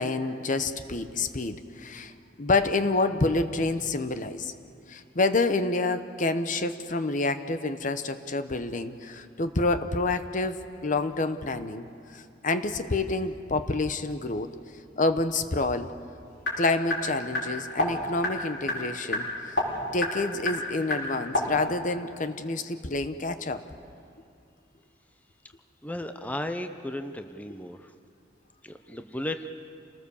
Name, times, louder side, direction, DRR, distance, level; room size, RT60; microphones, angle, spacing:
voice 1, 0.0-2.1 2.4-4.5 4.9-11.9 12.1-14.5 15.0-15.9 16.6-19.5 19.9-23.6, left 3 dB, 45° left, 10 dB, 0.9 m, -28 dB
sound 1, 16.0-21.5, left 2 dB, 70° left, 5.5 m, -31 dB
voice 2, 25.8-27.9 28.6-29.5, left 1 dB, 10° left, 7 dB, 0.7 m, -35 dB
28.5 x 19.0 x 7.1 m, 2.4 s
head